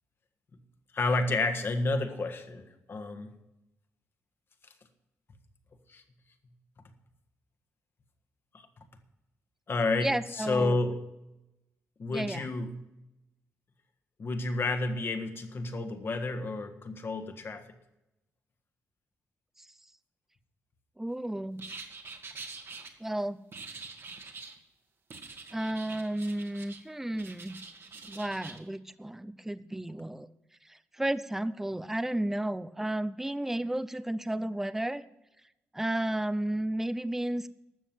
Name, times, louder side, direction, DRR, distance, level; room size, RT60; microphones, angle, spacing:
voice 1, 0.9-3.3 5.9-6.0 8.5-8.7 9.7-11.0 12.0-12.7 14.2-17.7, left 2 dB, 45° left, 7 dB, 1.6 m, -30 dB
voice 2, 10.0-10.8 12.1-12.5 21.0-21.6 23.0-23.4 25.5-27.6 28.1-30.3 30.7-35.0 35.7-37.5, right 1 dB, 5° right, 15 dB, 0.5 m, -32 dB
sound 1, 21.6-22.9 23.5-24.6 25.1-26.8 27.1-28.6, right 4 dB, 50° right, 1.8 m, -45 dB
12.5 x 7.2 x 7.7 m, 0.94 s
cardioid pair, 80°, 5 cm